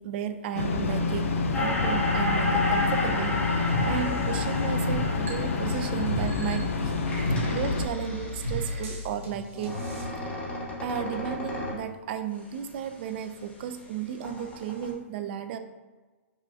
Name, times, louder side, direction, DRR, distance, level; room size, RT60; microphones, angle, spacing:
voice 1, 0.0-9.8 10.8-15.6, right 8 dB, 50° right, 8 dB, 0.3 m, -34 dB
sound 1, 0.6-7.9, left 4 dB, 85° left, 0.4 m, -28 dB
sound 2, 1.5-6.5 7.1-8.8 9.5-11.9 12.4-13.9 14.2-14.9, left 2 dB, 15° left, 0.8 m, -32 dB
sound 3, 3.7-10.0, equal, 80° right, 1.0 m, -36 dB
5.4 x 2.2 x 2.6 m, 1.3 s
hypercardioid pair, 130°, 7 cm